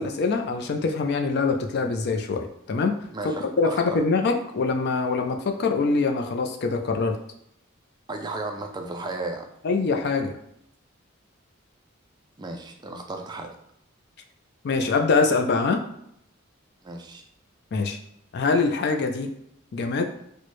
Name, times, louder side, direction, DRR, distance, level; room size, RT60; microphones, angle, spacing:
voice 1, 0.0-2.9 3.6-7.2 9.6-10.3 14.6-15.8 17.7-18.0 18.3-19.3 19.7-20.0, left 4 dB, 55° left, 5 dB, 0.4 m, -24 dB
voice 2, 3.1-4.0 8.1-9.5 12.4-13.6 16.8-17.2, right 2 dB, 20° right, 4 dB, 0.3 m, -34 dB
4.3 x 2.1 x 3.1 m, 0.74 s
head